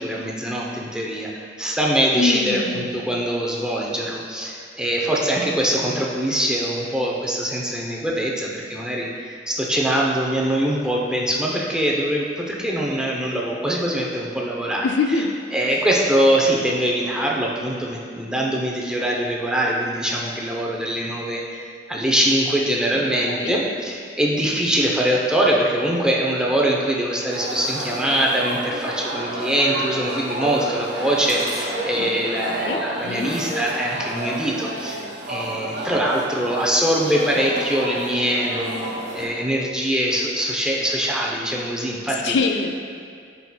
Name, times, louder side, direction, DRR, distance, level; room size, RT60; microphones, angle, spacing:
voice 1, 0.0-14.9 15.5-21.6 21.9-42.4, right 1 dB, 5° right, -3 dB, 0.6 m, -23 dB
voice 2, 2.1-2.9 14.8-15.4 22.9-23.6 32.0-32.1 32.4-33.3 42.1-42.7, left 4 dB, 80° left, 4 dB, 0.4 m, -25 dB
sound 1, 27.3-39.3, right 1 dB, 75° right, 1.1 m, -30 dB
10.5 x 4.1 x 2.2 m, 2.3 s
head